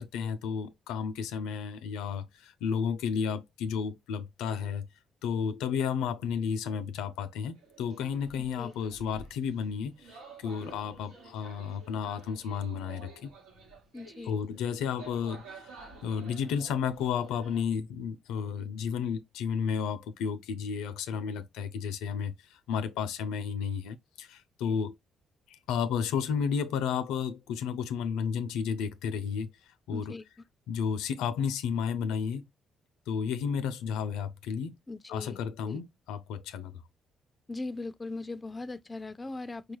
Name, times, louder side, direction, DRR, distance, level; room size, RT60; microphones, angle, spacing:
voice 1, 0.0-4.9 5.2-13.3 14.3-25.0 25.5-29.5 29.9-30.1 30.7-32.4 33.1-34.7 35.1-36.7, left 7 dB, 90° left, 0.4 m, -32 dB
sound 1, 7.5-17.6, right 3 dB, 90° right, 1.4 m, -51 dB
voice 2, 8.4-8.7 13.9-14.3 29.9-30.2 34.9-35.4 35.7-35.8 37.5-39.8, left 2 dB, 25° left, 0.4 m, -39 dB
4.7 x 2.3 x 3.1 m
cardioid pair, 75°, 0 cm